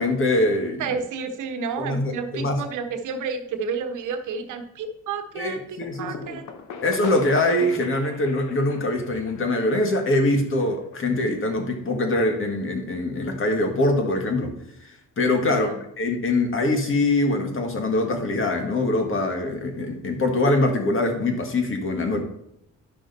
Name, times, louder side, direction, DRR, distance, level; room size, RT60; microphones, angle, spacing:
voice 1, 0.0-0.8 1.8-2.6 5.4-6.4 6.8-14.5 15.2-15.7 16.0-22.2, left 2 dB, 45° left, 4 dB, 1.9 m, -23 dB
voice 2, 0.8-6.4 15.5-15.8, right 5 dB, 80° right, 6 dB, 1.1 m, -31 dB
sound 1, 5.8-11.4, left 6 dB, 75° left, 1.1 m, -42 dB
10.5 x 6.0 x 4.1 m, 0.75 s
cardioid pair, 90°, 30 cm